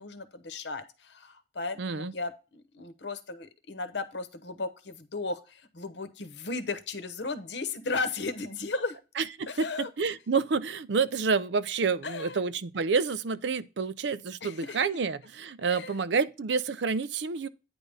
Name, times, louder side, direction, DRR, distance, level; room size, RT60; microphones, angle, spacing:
voice 1, 0.0-9.0 9.5-9.9 12.0-12.4 14.4-15.0 15.6-15.9, left 3 dB, 65° left, 1.0 m, -35 dB
voice 2, 1.8-2.1 9.2-17.5, right 5 dB, 65° right, 0.5 m, -29 dB
9.5 x 3.6 x 5.5 m
head